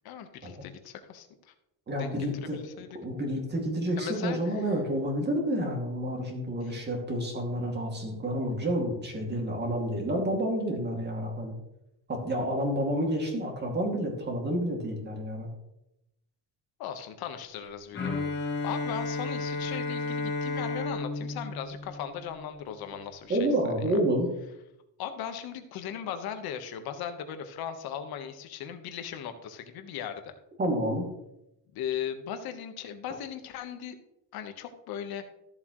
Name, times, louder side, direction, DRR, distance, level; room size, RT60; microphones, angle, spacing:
voice 1, 0.0-1.5 2.0-3.0 4.0-4.4 6.6-6.8 16.8-24.0 25.0-30.3 31.7-34.0 34.3-35.2, left 9 dB, 70° left, 8 dB, 1.4 m, -38 dB
voice 2, 1.9-2.6 3.0-11.5 12.1-15.5 23.3-24.3 30.6-31.1, right 1 dB, 25° right, 1 dB, 2.5 m, -29 dB
Bowed string instrument, 17.9-22.8, left 3 dB, 30° left, 2.5 m, -33 dB
14.0 x 7.6 x 3.2 m, 0.87 s
cardioid pair, 150°, 39 cm